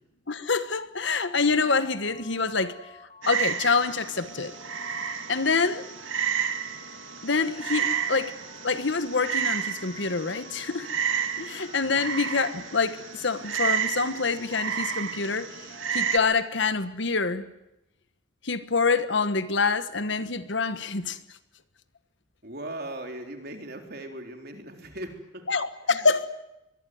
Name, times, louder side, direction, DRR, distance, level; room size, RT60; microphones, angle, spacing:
voice 1, 0.3-2.7 3.3-4.5 5.3-5.9 7.2-8.3 8.6-10.9 11.4-15.5 15.9-17.4 18.4-21.2 25.5-26.3, left 4 dB, 60° left, 1.3 m, -26 dB
Telephone, 1.0-16.7, left 5 dB, 35° left, 3.2 m, -51 dB
Frog, 3.2-16.2, right 7 dB, 70° right, 2.1 m, -31 dB
voice 2, 22.4-25.5 25.9-26.1, right 1 dB, 50° right, 3.7 m, -39 dB
23.5 x 21.5 x 9.4 m
head